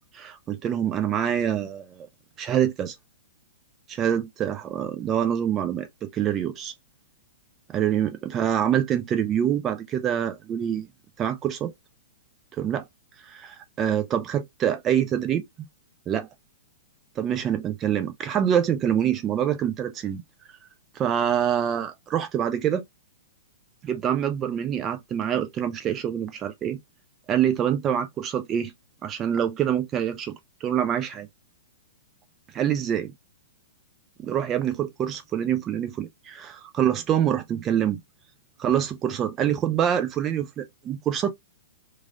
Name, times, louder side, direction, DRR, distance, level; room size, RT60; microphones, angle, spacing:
voice 1, 0.1-2.1 2.4-3.0 3.9-6.7 7.7-10.9 11.2-11.7 12.5-12.8 13.2-15.5 16.1-16.3 17.2-20.2 20.9-22.8 23.8-26.8 27.3-28.7 29.0-30.3 30.6-31.3 32.5-33.1 34.2-38.0 38.6-41.3, right 9 dB, 25° right, 0.4 m, -25 dB
3.1 x 2.4 x 2.4 m
figure-of-eight pair, 110°, 0 cm